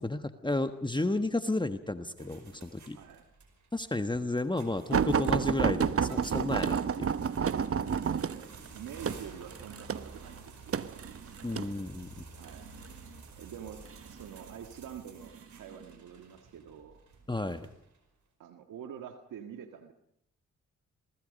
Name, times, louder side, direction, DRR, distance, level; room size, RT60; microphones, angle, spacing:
voice 1, 0.0-3.0 3.7-7.1 11.4-12.2 17.3-17.7, left 2 dB, 15° left, 9 dB, 1.4 m, -32 dB
sound 1, 2.2-18.1, right 4 dB, 65° right, 5.2 m, -52 dB
voice 2, 2.9-3.2 7.9-11.7 12.4-12.7 13.4-17.0 18.4-19.9, right 8 dB, 80° right, 5 dB, 1.7 m, -47 dB
sound 2, 4.9-11.7 12.5-12.9 13.9-14.5 15.2-15.4 15.8-15.9, right 6 dB, 45° right, 1.0 m, -30 dB
26.5 x 19.5 x 5.3 m, 0.72 s
supercardioid pair, 50°, 32 cm